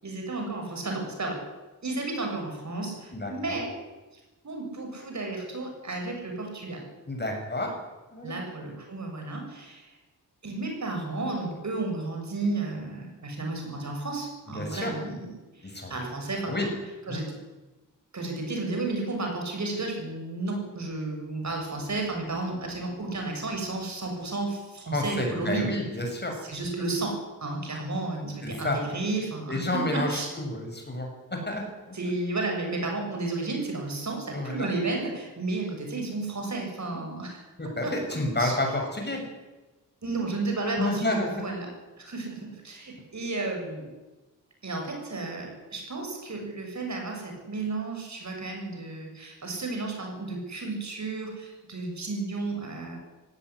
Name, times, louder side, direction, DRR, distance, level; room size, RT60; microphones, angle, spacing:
voice 1, 0.0-1.4 1.8-3.7 4.4-6.9 8.2-9.9 10.4-16.7 17.1-17.4 18.1-25.7 26.4-30.3 31.9-37.4 37.8-37.9 38.4-38.5 40.0-41.7 42.0-43.9 44.6-53.0, right 3 dB, 55° right, 2 dB, 7.4 m, -32 dB
voice 2, 3.1-3.6 7.1-7.7 8.1-8.4 14.5-14.9 15.6-16.0 16.5-16.7 17.1-17.2 24.9-26.4 28.4-28.8 29.5-32.0 34.3-34.7 36.9-37.0 37.6-39.2 40.8-41.4, left 1 dB, 30° left, 2 dB, 7.2 m, -30 dB
18.0 x 16.5 x 9.8 m, 1.1 s
wide cardioid pair, 80°, 33 cm